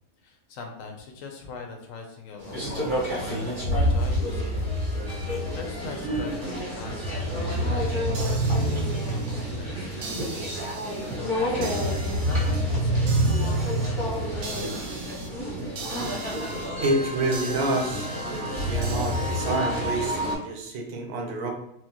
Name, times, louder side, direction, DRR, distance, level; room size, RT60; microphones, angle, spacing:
voice 1, 0.2-2.9 3.2-4.8 5.5-10.9 11.2-14.8, left 4 dB, 70° left, 2 dB, 0.9 m, -41 dB
sound 1, 2.4-20.3, equal, 20° right, 1.0 m, -27 dB
sound 2, 8.1-9.5 10.0-11.2 11.6-12.6 13.1-13.9 14.4-15.3 15.7-16.7 17.3-18.3 18.8-19.6, right 4 dB, 60° right, 0.7 m, -41 dB
voice 2, 16.8-18.1 18.6-21.5, right 2 dB, 90° right, 2 dB, 1.2 m, -28 dB
4.4 x 2.0 x 2.8 m, 0.76 s
omnidirectional pair, 1.5 m